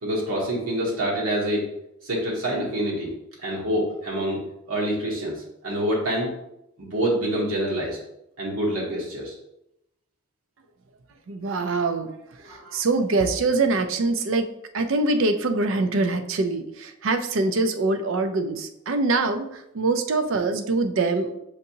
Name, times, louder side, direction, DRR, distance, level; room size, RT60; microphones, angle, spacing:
voice 1, 0.0-1.7 2.0-3.1 3.4-6.3 6.8-8.0 8.4-9.3 12.4-12.7, right 1 dB, 85° right, -3 dB, 1.1 m, -26 dB
voice 2, 11.3-12.1 12.4-14.5 14.7-21.3, right 3 dB, 60° right, 8 dB, 0.4 m, -24 dB
6.5 x 2.7 x 2.7 m, 0.82 s
head